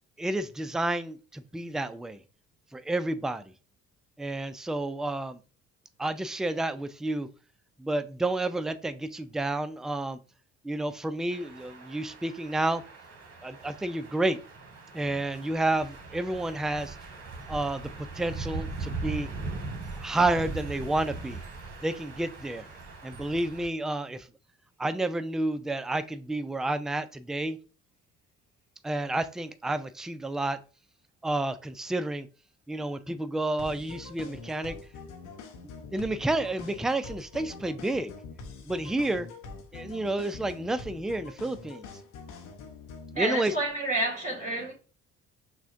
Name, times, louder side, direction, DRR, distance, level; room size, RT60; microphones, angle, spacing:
voice 1, 0.2-2.2 2.7-3.5 4.2-5.4 6.0-7.3 7.8-10.2 10.6-12.8 13.4-14.4 14.9-17.0 17.5-17.9 18.2-19.3 20.0-21.4 21.8-22.7 23.0-24.3 24.8-27.6 28.8-30.6 31.2-32.3 32.7-34.8 35.9-38.1 38.7-39.3 39.7-41.9 43.1-43.5, right 2 dB, ahead, 0.3 m, -30 dB
sound 1, 11.3-23.7, right 3 dB, 55° right, 1.2 m, -40 dB
sound 2, 33.6-43.2, left 4 dB, 75° left, 0.7 m, -44 dB
voice 2, 43.1-44.7, right 1 dB, 25° right, 1.9 m, -29 dB
5.9 x 2.2 x 2.5 m
hypercardioid pair, 60°, 31 cm